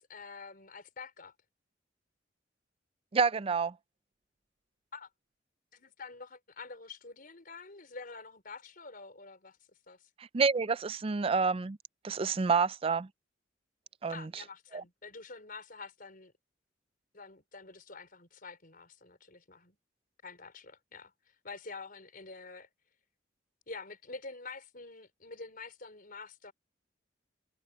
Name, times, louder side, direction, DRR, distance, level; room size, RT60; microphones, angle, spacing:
voice 1, 0.1-1.3 4.9-5.1 5.7-9.6 9.9-10.0 14.1-16.3 17.1-19.8 20.2-21.1 21.4-22.7 23.7-26.5, left 4 dB, 50° left, 5.1 m, -47 dB
voice 2, 3.1-3.7 10.3-11.8 12.0-13.1 14.0-14.3 14.7-14.8, right 5 dB, 30° right, 0.4 m, -28 dB
head